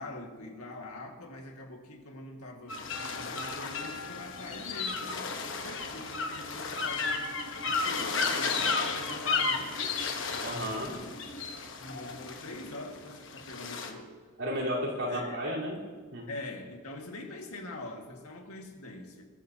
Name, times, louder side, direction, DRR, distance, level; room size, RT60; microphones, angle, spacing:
voice 1, 0.0-5.3 5.5-7.1 7.7-10.0 10.3-11.1 11.7-14.1 15.1-15.4 16.3-19.3, left 2 dB, 85° left, 2 dB, 1.9 m, -44 dB
sound 1, 2.7-13.9, left 4 dB, 55° left, 1.1 m, -33 dB
voice 2, 10.4-10.9 14.4-15.8 16.1-16.3, equal, 75° right, -6 dB, 3.9 m, -33 dB
20.5 x 13.0 x 2.8 m, 1.5 s
head